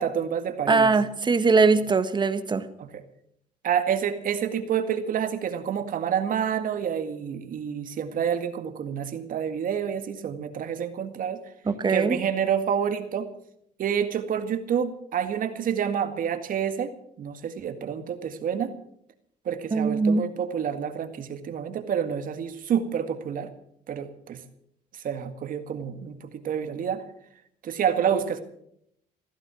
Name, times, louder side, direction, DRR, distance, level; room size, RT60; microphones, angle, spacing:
voice 1, 0.0-0.9 2.8-2.9 3.6-11.4 11.9-13.3 13.8-16.9 17.2-18.7 19.5-23.5 23.9-24.4 24.9-27.0 27.6-28.4, right 8 dB, 55° right, 8 dB, 2.0 m, -28 dB
voice 2, 0.7-2.6 11.7-12.2 19.7-20.3, right 4 dB, 25° right, 10 dB, 1.5 m, -21 dB
16.5 x 14.0 x 6.3 m, 0.71 s
cardioid pair, 110°, 17 cm